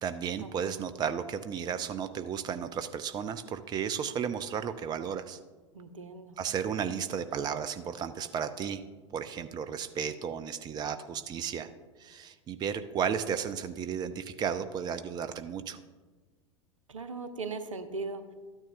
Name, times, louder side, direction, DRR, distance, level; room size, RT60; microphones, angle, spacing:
voice 1, 0.0-5.4 6.4-8.8 9.1-11.7 12.0-15.8, right 7 dB, 25° right, 11 dB, 0.5 m, -34 dB
voice 2, 5.7-6.4 16.9-18.2, right 3 dB, 80° right, 9 dB, 0.8 m, -38 dB
13.5 x 9.8 x 2.5 m, 1.3 s
figure-of-eight pair, 85°, 16 cm